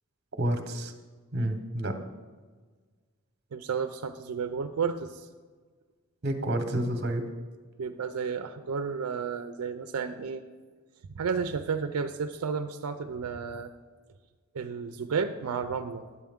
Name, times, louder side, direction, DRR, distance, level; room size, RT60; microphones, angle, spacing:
voice 1, 0.4-0.9 1.3-1.9 6.2-7.2, right 1 dB, 50° right, 7 dB, 0.9 m, -29 dB
voice 2, 3.5-5.3 7.8-10.4 11.1-13.7 14.5-16.0, right 5 dB, 85° right, 7 dB, 0.4 m, -32 dB
10.0 x 8.3 x 3.6 m, 1.5 s
head